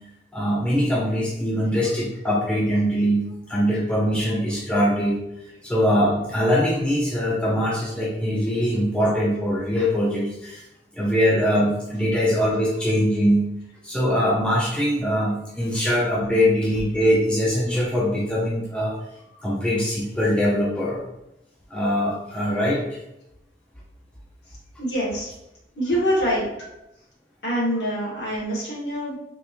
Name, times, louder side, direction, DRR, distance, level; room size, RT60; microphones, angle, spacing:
voice 1, 0.3-5.2 5.6-10.6 10.9-13.5 13.8-19.0 19.4-21.0 21.7-23.0, equal, 5° left, -5 dB, 0.4 m, -22 dB
voice 2, 24.8-25.3 25.7-26.5 27.4-29.2, equal, 70° left, -6 dB, 1.4 m, -25 dB
3.5 x 2.5 x 2.9 m, 0.86 s
head